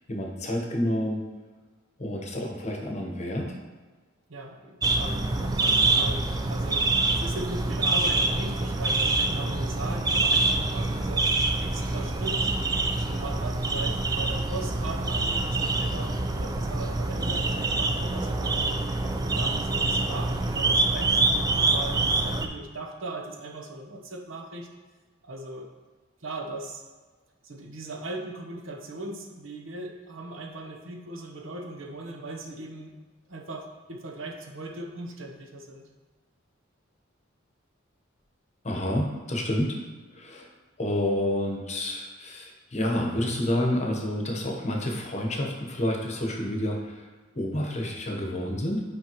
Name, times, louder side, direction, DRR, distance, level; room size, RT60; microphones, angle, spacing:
voice 1, 0.1-1.2 2.0-3.5 38.6-39.8 40.1-40.5 40.8-47.1 47.3-48.8, left 1 dB, 35° left, 1 dB, 1.0 m, -29 dB
voice 2, 4.3-11.3 11.6-12.5 13.0-18.8 19.3-24.7 25.2-25.7 26.2-26.8 27.4-32.9 33.3-35.9, right 2 dB, 70° right, 2 dB, 0.9 m, -38 dB
sound 1, 4.8-22.5, right 2 dB, 20° right, 0.4 m, -26 dB
8.6 x 5.1 x 3.0 m, 1.4 s
head